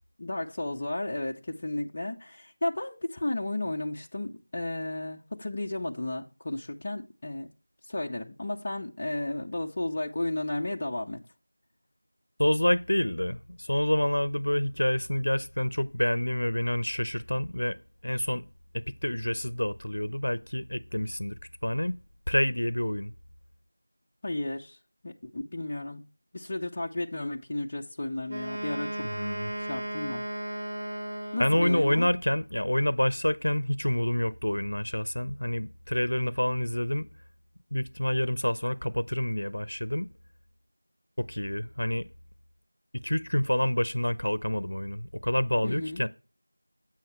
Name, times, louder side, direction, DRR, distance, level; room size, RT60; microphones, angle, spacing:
voice 1, 0.2-7.5 7.9-11.2 24.2-24.8 25.0-26.0 26.3-29.1 29.7-30.2 31.3-32.1 45.6-46.1, left 1 dB, 25° left, 0.5 m, -33 dB
voice 2, 12.4-17.8 18.0-18.4 18.7-22.0 22.3-23.1 29.0-29.5 31.4-37.1 37.7-40.1 41.2-42.1 42.9-46.1, left 1 dB, 75° left, 0.6 m, -28 dB
Wind instrument woodwind instrument, 28.3-32.0, right 1 dB, 35° right, 1.5 m, -35 dB
7.5 x 5.7 x 4.3 m
figure-of-eight pair, 175°, 0 cm